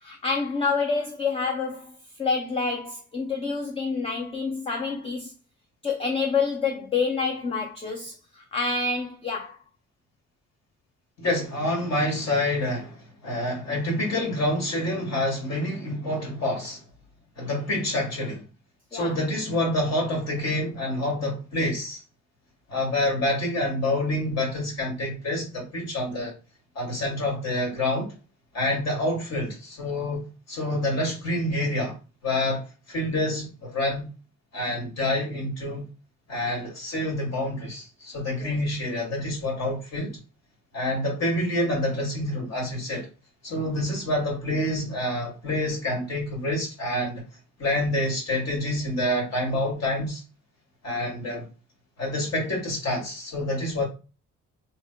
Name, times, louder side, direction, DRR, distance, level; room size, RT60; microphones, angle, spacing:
voice 1, 0.0-5.3 5.8-9.6 18.9-19.2 38.4-38.5, left 4 dB, 20° left, 0.4 m, -28 dB
voice 2, 11.2-16.8 17.4-18.4 18.9-22.0 22.7-26.3 26.7-28.1 28.5-32.0 32.2-34.1 34.5-35.9 36.3-40.2 40.7-43.1 43.4-47.2 47.6-50.2 50.8-51.5 52.0-53.8, left 1 dB, 60° left, 1.6 m, -27 dB
3.1 x 2.8 x 2.2 m
cardioid pair, 90°, 30 cm